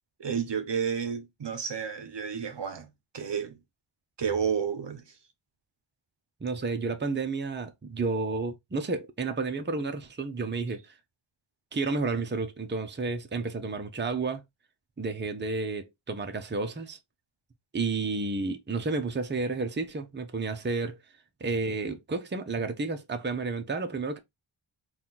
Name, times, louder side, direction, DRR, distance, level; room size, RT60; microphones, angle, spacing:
voice 1, 0.2-2.9 3.1-3.6 4.2-5.1, right 7 dB, 60° right, 0.7 m, -31 dB
voice 2, 6.4-11.0 11.7-14.4 15.0-17.0 17.7-21.0 21.4-24.2, right 3 dB, 25° right, 0.6 m, -31 dB
4.3 x 2.4 x 3.7 m
wide cardioid pair, 85°, 49 cm